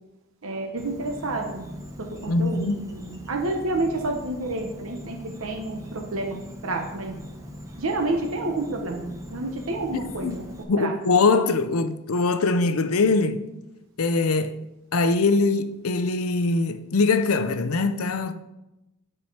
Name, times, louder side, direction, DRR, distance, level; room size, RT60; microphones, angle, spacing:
voice 1, 0.4-7.2 7.8-10.9, right 2 dB, 75° right, 1.0 m, -30 dB
Insect, 0.8-10.6, equal, 15° right, 0.9 m, -41 dB
voice 2, 2.3-2.8 10.2-10.4 10.7-13.5 14.0-14.7 14.9-18.3, left 3 dB, 85° left, 0.6 m, -22 dB
9.6 x 4.8 x 5.5 m
head